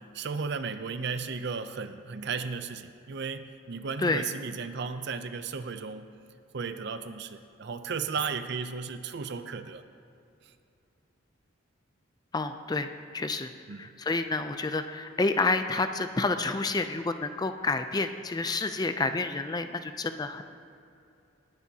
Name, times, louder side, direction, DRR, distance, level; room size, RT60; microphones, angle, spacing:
voice 1, 0.1-6.1 6.5-9.8 10.4-10.5 13.7-13.9, right 5 dB, 55° right, 11 dB, 0.5 m, -35 dB
voice 2, 12.3-13.5 13.8-20.4, left 3 dB, 20° left, 8 dB, 0.4 m, -29 dB
18.5 x 10.5 x 2.8 m, 2.7 s
head